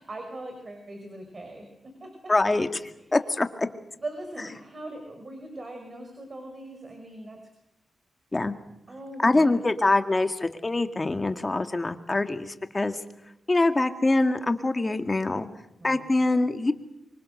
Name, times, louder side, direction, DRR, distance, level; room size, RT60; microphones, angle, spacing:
voice 1, 0.0-1.7 2.0-2.1 4.0-7.4 8.9-9.4 15.8-16.0, right 1 dB, 40° right, 4 dB, 5.7 m, -40 dB
voice 2, 2.3-2.7 3.1-3.7 8.3-8.5 9.2-13.0 13.5-15.5 15.8-16.7, left 2 dB, 25° left, 8 dB, 2.1 m, -24 dB
25.5 x 25.0 x 6.6 m, 0.83 s
cardioid pair, 80°, 0 cm